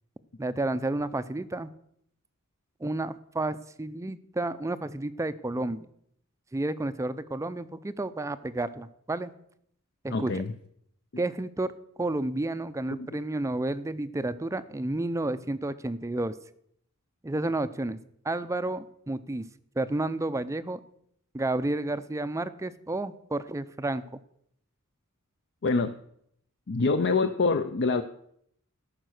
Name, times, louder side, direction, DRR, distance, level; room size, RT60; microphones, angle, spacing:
voice 1, 0.4-1.7 2.8-5.9 6.5-9.3 10.0-10.4 11.2-11.7 12.0-16.4 17.2-18.0 18.2-19.5 19.8-20.8 21.3-24.2, right 2 dB, 15° right, 13 dB, 0.4 m, -31 dB
voice 2, 10.1-10.5 11.1-11.2 12.9-13.2 25.6-26.0 26.7-28.0, left 3 dB, 50° left, 9 dB, 0.6 m, -26 dB
13.5 x 5.9 x 6.4 m, 0.70 s
head